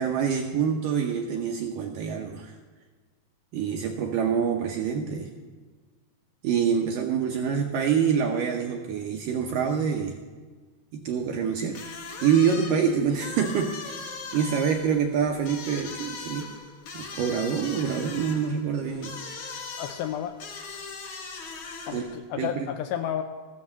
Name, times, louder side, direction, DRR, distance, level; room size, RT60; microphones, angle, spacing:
voice 1, 0.0-2.6 3.5-5.3 6.4-10.2 10.9-11.8 12.2-14.0 14.3-16.5 16.9-19.1 21.9-22.1 22.4-22.7, right 7 dB, 75° right, 3 dB, 2.0 m, -26 dB
sound 1, 11.7-22.2, left 4 dB, 65° left, 1.4 m, -40 dB
voice 2, 19.8-20.4 21.9-23.2, left 10 dB, 80° left, 7 dB, 2.2 m, -31 dB
14.5 x 7.6 x 7.3 m, 1.4 s
omnidirectional pair, 4.7 m